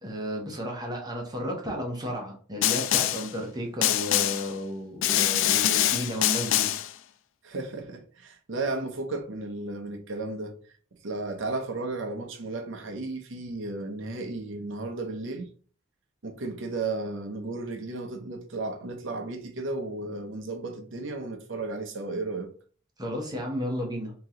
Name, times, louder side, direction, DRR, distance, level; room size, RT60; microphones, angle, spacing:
voice 1, 0.0-6.7 23.0-24.1, equal, 20° right, 0.9 m, -33 dB
Snare drum, 2.6-3.3 3.8-4.5 5.0-6.9, left 12 dB, 65° left, 0.3 m, -24 dB
voice 2, 7.4-10.6 11.0-15.5 16.2-22.5, right 2 dB, 65° right, 0.8 m, -34 dB
3.0 x 2.9 x 3.7 m
head